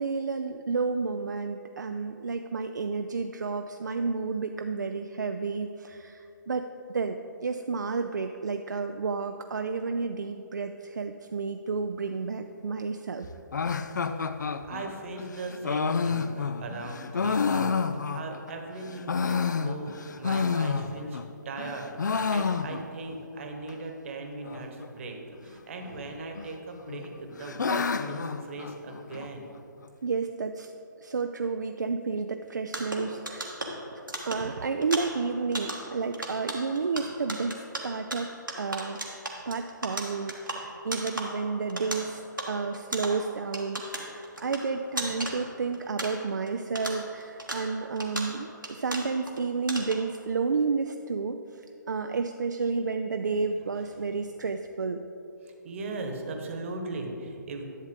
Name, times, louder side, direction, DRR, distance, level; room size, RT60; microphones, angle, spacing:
voice 1, 0.0-13.3 30.0-30.7 31.0-33.6 33.9-39.0 39.5-42.2 42.5-55.0, right 4 dB, 65° right, 6 dB, 0.4 m, -31 dB
sound 1, 13.5-18.5 18.9-21.3 21.6-23.1 23.4-23.5 23.7-23.8 24.4-24.9 25.9-26.5 26.9-29.3, left 5 dB, 65° left, 0.4 m, -29 dB
voice 2, 14.0-29.5 53.8-54.0 55.4-57.6, right 2 dB, 40° right, 3 dB, 1.2 m, -39 dB
sound 2, 32.7-46.5 46.8-49.4 49.7-50.2, right 1 dB, 90° right, 1.4 m, -37 dB
11.0 x 7.3 x 3.7 m, 2.8 s
figure-of-eight pair, 135°, 10 cm